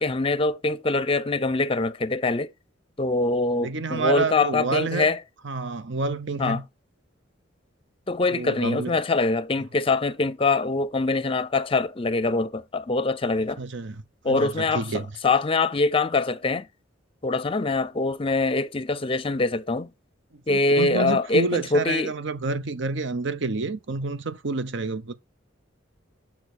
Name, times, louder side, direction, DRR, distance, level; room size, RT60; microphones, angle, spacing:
voice 1, 0.0-2.5 3.0-5.2 6.4-6.6 8.1-13.6 14.2-16.7 17.2-19.9 20.5-22.1, left 3 dB, 30° left, 0.6 m, -24 dB
voice 2, 3.5-5.1 5.4-6.6 8.3-9.0 13.6-15.1 20.5-25.1, right 3 dB, 65° right, 0.9 m, -29 dB
6.6 x 5.9 x 6.2 m
head